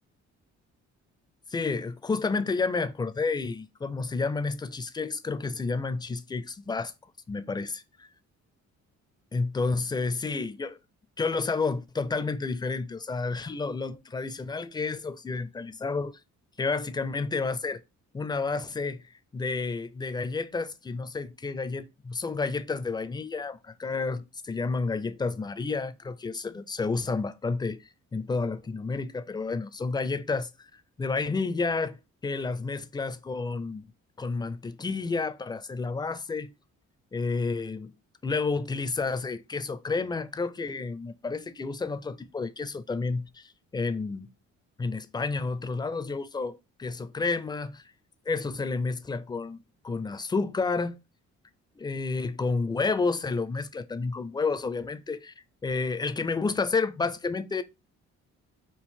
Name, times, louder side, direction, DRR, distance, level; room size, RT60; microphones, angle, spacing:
voice 1, 1.5-6.9 7.3-8.1 9.3-10.8 11.2-16.2 16.6-17.8 18.1-19.0 19.3-33.8 34.2-36.5 37.1-37.9 38.2-44.3 44.8-47.8 48.3-51.0 51.8-55.3 55.6-57.6, left 4 dB, 15° left, 0.4 m, -30 dB
4.4 x 2.5 x 3.6 m
cardioid pair, 90°, 30 cm